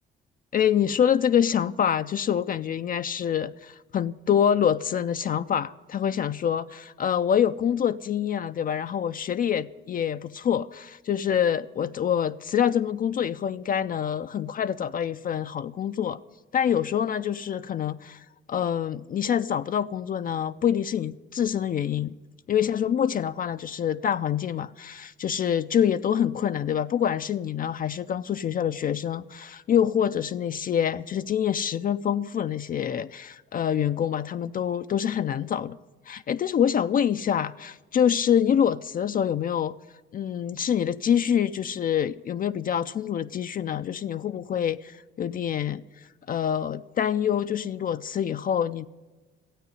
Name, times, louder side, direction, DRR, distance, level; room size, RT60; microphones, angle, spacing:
voice 1, 0.5-16.2 16.5-22.1 22.5-35.8 36.1-39.7 40.1-45.8 46.3-48.9, left 9 dB, 45° left, 0.4 m, -26 dB
13.5 x 8.5 x 9.4 m
cardioid pair, 90°, 20 cm